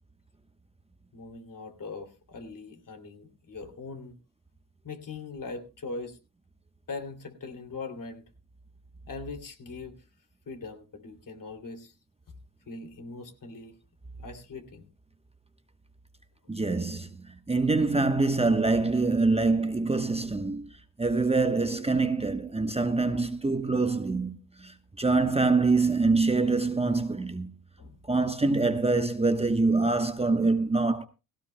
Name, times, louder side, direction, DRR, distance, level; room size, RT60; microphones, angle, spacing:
voice 1, 1.1-4.2 4.8-6.2 6.9-8.2 9.1-10.0 10.5-11.9 12.7-13.7 14.2-14.9 27.8-28.0, left 3 dB, 45° left, 2.8 m, -41 dB
voice 2, 16.5-17.1 17.5-20.7 21.0-27.5 28.1-31.1, right 3 dB, 15° right, 1.1 m, -25 dB
17.5 x 16.5 x 2.2 m
supercardioid pair, 65°, 44 cm